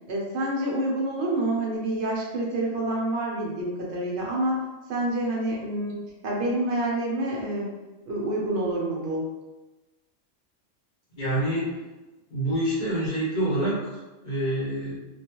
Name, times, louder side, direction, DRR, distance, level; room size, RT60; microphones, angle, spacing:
voice 1, 0.1-4.6 4.9-7.8 8.1-9.3, right 1 dB, 65° right, -3 dB, 0.9 m, -28 dB
voice 2, 11.1-11.7 12.3-14.9, right 1 dB, 45° left, -8 dB, 0.8 m, -27 dB
2.3 x 2.2 x 2.9 m, 1.1 s
omnidirectional pair, 1.3 m